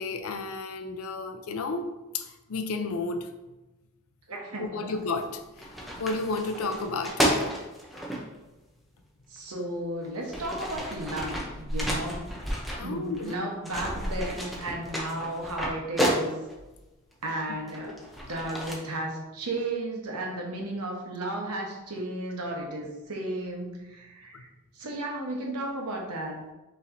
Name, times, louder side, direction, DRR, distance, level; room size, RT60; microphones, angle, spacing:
voice 1, 0.0-1.9 2.1-3.3 4.6-5.7 6.0-7.5 12.8-13.4 13.8-13.9 24.3-24.4, left 3 dB, 65° left, 7 dB, 0.5 m, -32 dB
voice 2, 4.3-4.8 9.3-12.2 12.8-16.3 17.2-17.9 18.3-24.5 24.7-26.4, right 1 dB, 85° right, 0 dB, 1.0 m, -34 dB
sound 1, 5.0-5.2 5.6-8.2 9.4-9.5 10.0-13.4 13.6-16.6 17.3-18.7, equal, ahead, 0.6 m, -31 dB
5.6 x 3.1 x 2.6 m, 1.1 s
head